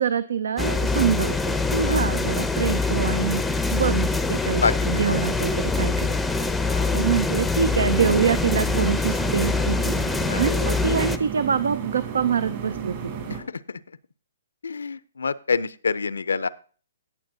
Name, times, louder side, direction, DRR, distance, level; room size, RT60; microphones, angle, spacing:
voice 1, 0.0-6.2 6.9-10.0 10.3-13.1, right 7 dB, 70° right, 16 dB, 0.5 m, -25 dB
sound 1, 0.6-11.2, left 3 dB, 5° left, 0.6 m, -24 dB
voice 2, 6.7-7.0 10.3-10.5 13.3-13.8 14.6-16.5, left 5 dB, 80° left, 18 dB, 0.5 m, -27 dB
sound 2, 7.6-13.4, right 7 dB, 45° right, 3.3 m, -34 dB
17.5 x 7.3 x 2.7 m, 0.39 s
hypercardioid pair, 135°, 0 cm